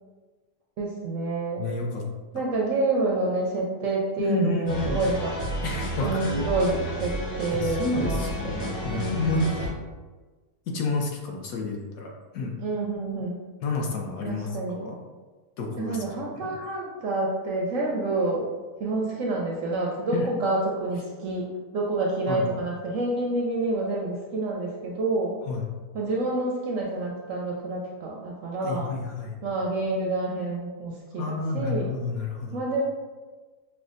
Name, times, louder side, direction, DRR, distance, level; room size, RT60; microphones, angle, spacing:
voice 1, 0.8-1.7 2.3-5.3 6.0-8.5 8.9-9.5 12.6-13.4 14.3-14.9 15.8-18.5 18.8-25.4 25.9-28.9 29.4-31.9 32.5-32.8, right 2 dB, 70° right, -2 dB, 0.8 m, -28 dB
voice 2, 1.6-2.0 4.2-5.0 5.6-6.5 7.5-9.7 10.7-12.5 13.6-14.5 14.8-15.0 15.6-16.0 16.4-16.6 20.1-20.3 22.3-22.5 25.5-25.7 28.6-29.4 31.2-32.6, left 3 dB, 65° left, 0 dB, 1.0 m, -30 dB
sound 1, 4.7-9.7, right 1 dB, 45° left, 1.5 m, -31 dB
5.9 x 2.1 x 2.5 m, 1.3 s
omnidirectional pair, 1.7 m